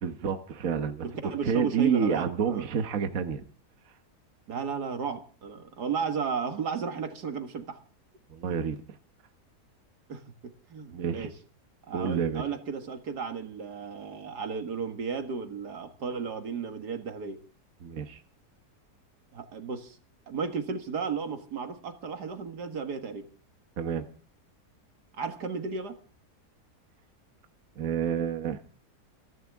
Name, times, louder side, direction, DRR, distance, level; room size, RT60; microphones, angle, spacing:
voice 1, 0.0-1.0 1.4-3.4 8.3-8.8 10.9-11.3 11.9-12.5 17.8-18.2 23.8-24.0 27.8-28.6, right 7 dB, 55° right, 7 dB, 1.5 m, -28 dB
voice 2, 1.0-2.7 4.5-7.8 8.5-8.6 10.1-10.2 10.7-11.3 11.9-17.4 19.3-20.0 20.3-23.3 25.2-26.0, right 5 dB, 80° right, 7 dB, 2.3 m, -34 dB
28.5 x 11.5 x 3.6 m, 0.42 s
omnidirectional pair, 1.7 m